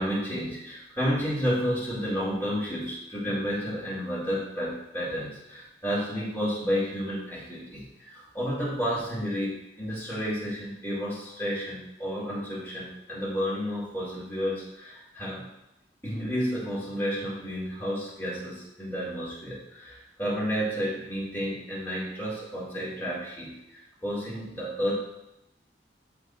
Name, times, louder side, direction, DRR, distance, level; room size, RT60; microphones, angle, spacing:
voice 1, 0.0-15.4 16.0-24.9, equal, 15° left, -7 dB, 2.4 m, -31 dB
13.0 x 4.6 x 2.5 m, 0.86 s
head